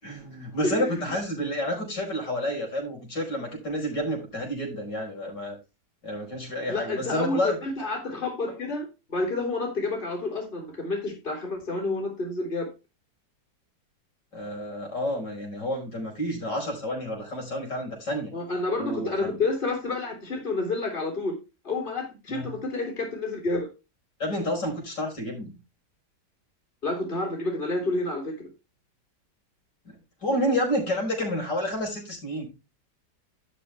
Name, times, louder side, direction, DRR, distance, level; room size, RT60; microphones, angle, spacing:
voice 1, 0.0-5.6 6.0-7.6 14.3-18.3 18.8-19.3 22.3-22.5 24.2-25.5 29.9-30.0 30.2-32.5, equal, 85° left, 0 dB, 5.7 m, -29 dB
voice 2, 0.6-1.0 6.7-12.7 18.3-21.4 21.6-23.7 26.8-28.5, left 2 dB, 30° left, 1 dB, 3.3 m, -29 dB
12.0 x 6.7 x 3.3 m, 0.27 s
omnidirectional pair, 1.8 m